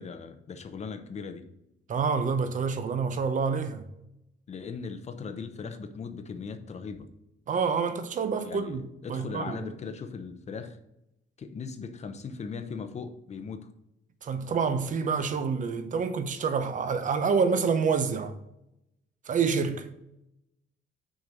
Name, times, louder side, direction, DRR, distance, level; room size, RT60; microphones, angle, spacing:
voice 1, 0.0-1.5 4.5-7.1 8.4-10.8 11.4-13.7, left 5 dB, 35° left, 0.7 m, -39 dB
voice 2, 1.9-3.8 7.5-8.8 9.1-9.7 14.2-18.3 19.3-19.9, right 5 dB, 40° right, 0.7 m, -27 dB
6.4 x 4.6 x 5.1 m
cardioid pair, 145°, 20 cm